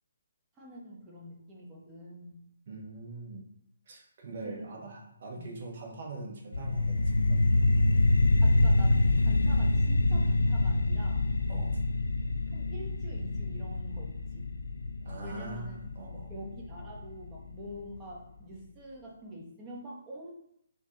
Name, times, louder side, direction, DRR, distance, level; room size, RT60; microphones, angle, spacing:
voice 1, 0.6-2.4 4.4-4.8 5.3-5.5 8.4-11.3 12.5-14.5 15.2-15.8 16.3-20.3, equal, 15° right, -3 dB, 0.9 m, -45 dB
voice 2, 2.7-3.4 3.9-7.7 11.5-11.8 15.0-16.3, right 3 dB, 45° right, -1 dB, 1.0 m, -43 dB
sound 1, 6.5-17.5, left 2 dB, 75° left, 0.3 m, -26 dB
4.4 x 2.7 x 2.8 m, 0.75 s
figure-of-eight pair, 135°, 0 cm